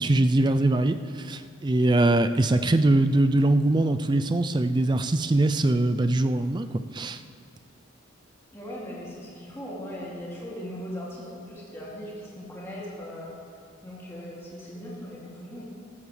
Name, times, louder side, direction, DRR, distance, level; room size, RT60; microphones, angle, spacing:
voice 1, 0.0-7.2, right 2 dB, 20° right, 10 dB, 0.3 m, -22 dB
voice 2, 8.5-13.3 13.8-15.6, equal, 10° left, -6 dB, 2.6 m, -39 dB
14.5 x 13.5 x 3.3 m, 2.3 s
head